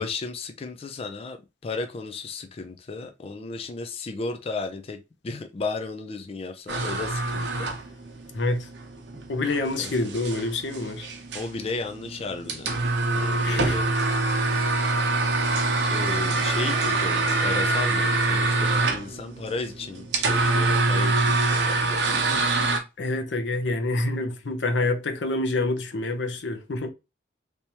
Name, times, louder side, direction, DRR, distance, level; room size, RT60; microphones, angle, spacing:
voice 1, 0.0-5.0 5.2-7.8 9.8-9.9 11.3-12.7 13.1-13.9 15.9-22.3, left 3 dB, 35° left, 0.4 m, -34 dB
sound 1, 6.7-22.8, right 3 dB, 75° right, 0.8 m, -25 dB
voice 2, 8.3-8.7 9.3-11.1 13.4-13.8 23.0-26.9, left 2 dB, 90° left, 0.7 m, -27 dB
3.3 x 2.9 x 2.8 m
head